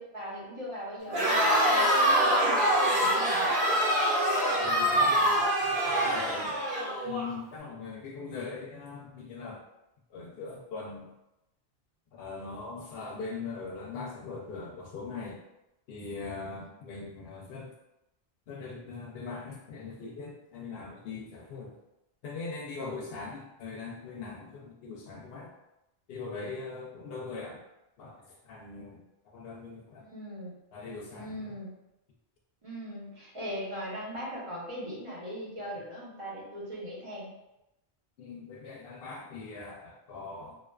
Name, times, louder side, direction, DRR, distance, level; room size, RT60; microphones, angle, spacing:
voice 1, 0.0-3.5 16.6-17.0 30.0-30.5 31.1-31.8 32.6-37.4, equal, 35° right, -6 dB, 0.8 m, -39 dB
Crowd, 1.1-7.3, right 1 dB, 60° right, 0.9 m, -25 dB
voice 2, 4.5-6.6 7.0-9.6 10.1-11.1 12.1-15.4 15.9-17.7 18.5-21.7 22.2-25.5 26.1-27.6 28.0-28.2 28.4-29.0 29.3-30.1 30.7-31.6 38.2-40.6, left 4 dB, 70° left, -1 dB, 0.8 m, -41 dB
2.4 x 2.3 x 2.2 m, 0.90 s
omnidirectional pair, 1.1 m